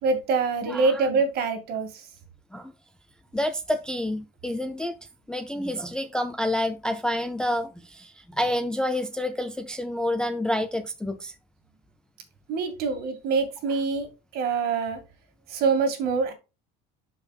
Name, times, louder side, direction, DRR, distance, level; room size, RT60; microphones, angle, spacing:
voice 1, 0.0-2.1 12.5-15.0 15.5-16.3, right 4 dB, 50° right, 2.0 m, -25 dB
voice 2, 0.7-1.1 2.5-2.7 3.3-5.0 5.3-11.3, left 1 dB, 5° left, 0.4 m, -28 dB
12.0 x 4.9 x 2.3 m
cardioid pair, 165°, 20 cm